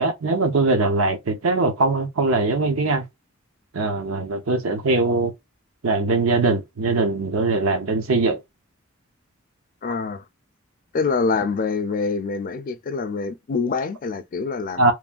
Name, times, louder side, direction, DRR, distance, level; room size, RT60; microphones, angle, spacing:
voice 1, 0.0-3.0 3.7-5.3 5.8-8.4 14.8-14.9, right 3 dB, 90° right, 0.7 m, -21 dB
voice 2, 9.8-10.2 10.9-14.9, left 4 dB, 40° left, 0.4 m, -25 dB
3.1 x 2.2 x 2.3 m
head